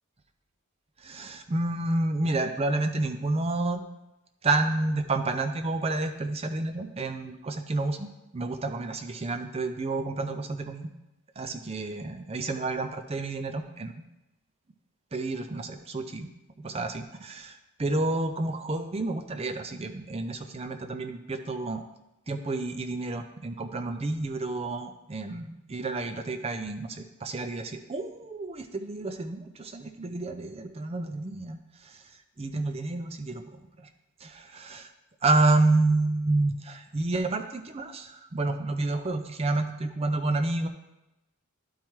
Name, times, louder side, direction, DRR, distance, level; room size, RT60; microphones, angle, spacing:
voice 1, 1.0-3.8 4.4-10.9 11.4-13.9 15.1-16.3 16.6-21.8 22.3-31.6 31.8-32.0 32.4-33.9 34.2-34.9 35.2-40.7, right 2 dB, 25° right, 7 dB, 0.5 m, -29 dB
11.5 x 4.6 x 3.1 m, 0.96 s
head